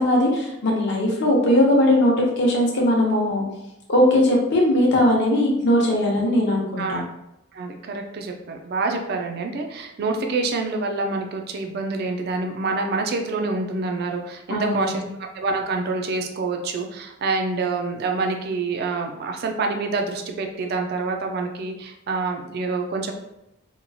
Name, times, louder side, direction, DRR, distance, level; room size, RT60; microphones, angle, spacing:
voice 1, 0.0-3.4 3.9-7.0 14.5-15.1, left 1 dB, 55° left, -2 dB, 0.7 m, -19 dB
voice 2, 7.5-23.1, right 3 dB, 45° right, 3 dB, 0.3 m, -27 dB
2.9 x 2.3 x 2.6 m, 0.87 s
head